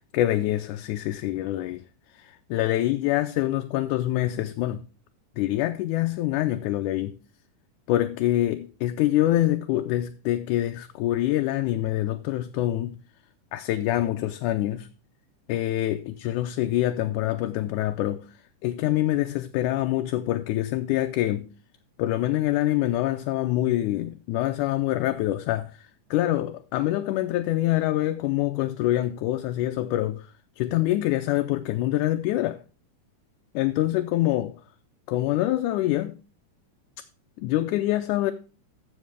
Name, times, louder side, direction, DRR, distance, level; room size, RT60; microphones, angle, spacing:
voice 1, 0.1-1.8 2.1-4.8 5.4-7.2 7.9-13.0 13.5-14.9 15.5-18.3 18.6-21.5 22.0-32.6 33.5-34.6 35.1-36.2 37.4-38.3, left 14 dB, 80° left, 2.0 m, -25 dB
14.0 x 7.3 x 3.5 m
omnidirectional pair, 3.8 m